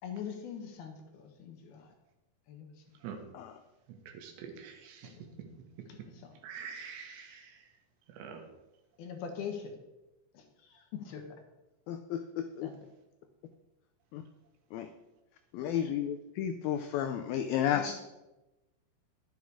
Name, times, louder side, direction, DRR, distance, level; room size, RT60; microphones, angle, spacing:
voice 1, 0.0-1.9 2.5-3.0 5.0-5.3 5.9-6.3 9.0-9.8 10.3-11.4 12.6-12.8 15.7-16.0 17.7-18.0, left 7 dB, 70° left, 4 dB, 2.9 m, -43 dB
voice 2, 3.9-5.2 6.4-7.6 8.1-8.4, right 6 dB, 90° right, 4 dB, 3.7 m, -45 dB
voice 3, 11.9-12.7 14.1-14.2 14.7-14.9 15.5-18.0, left 9 dB, 85° left, 8 dB, 2.1 m, -32 dB
11.5 x 8.2 x 4.8 m, 1.0 s
omnidirectional pair, 5.0 m